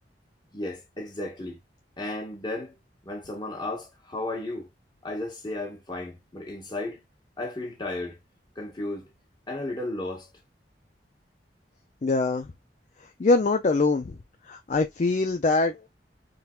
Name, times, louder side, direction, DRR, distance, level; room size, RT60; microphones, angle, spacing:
voice 1, 0.5-1.6 2.0-2.7 3.0-4.7 5.0-7.0 7.4-8.2 8.5-9.1 9.5-10.3, left 2 dB, 25° left, 1.5 m, -34 dB
voice 2, 12.0-12.5 13.2-14.2 14.5-15.9, left 3 dB, 40° left, 0.4 m, -23 dB
4.2 x 3.8 x 2.4 m
head